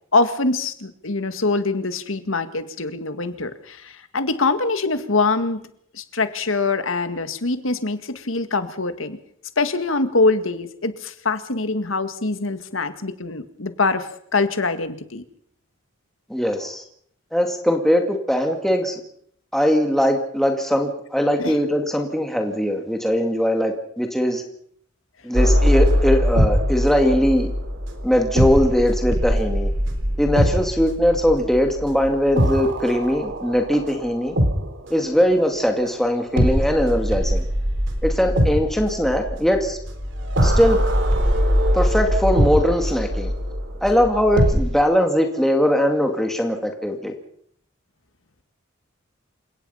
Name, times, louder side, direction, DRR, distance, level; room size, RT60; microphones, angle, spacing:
voice 1, 0.1-5.6 5.9-9.2 9.6-15.2 21.4-21.6, left 3 dB, 85° left, 10 dB, 2.0 m, -23 dB
voice 2, 16.3-16.8 17.3-19.0 19.5-24.4 25.2-27.5 28.0-29.7 30.2-34.3 34.9-37.4 38.0-39.8 40.4-40.8 41.7-43.3 43.8-47.1, equal, ahead, 3 dB, 2.3 m, -20 dB
sound 1, 25.3-35.1 36.4-44.8, equal, 65° right, 3.7 m, -22 dB
28.5 x 17.5 x 5.7 m, 0.66 s
head